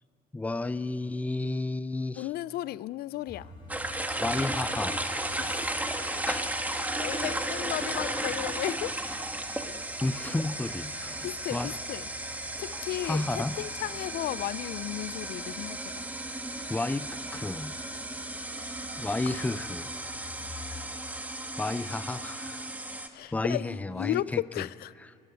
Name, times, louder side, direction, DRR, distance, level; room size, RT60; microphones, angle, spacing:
voice 1, 0.3-2.3 4.2-5.0 6.3-6.5 10.0-11.7 13.0-13.6 16.7-17.8 19.0-19.9 21.6-22.7 23.3-24.7, left 2 dB, 10° left, 0.5 m, -32 dB
voice 2, 2.2-3.5 5.4-5.7 6.8-9.0 11.2-12.1 12.6-16.1 19.3-19.4 23.1-24.9, left 15 dB, 70° left, 0.4 m, -34 dB
sound 1, 3.3-20.9, left 3 dB, 25° left, 6.6 m, -49 dB
sound 2, 3.7-23.1, right 1 dB, 10° right, 1.5 m, -35 dB
22.0 x 15.5 x 9.3 m
cardioid pair, 110°, 17 cm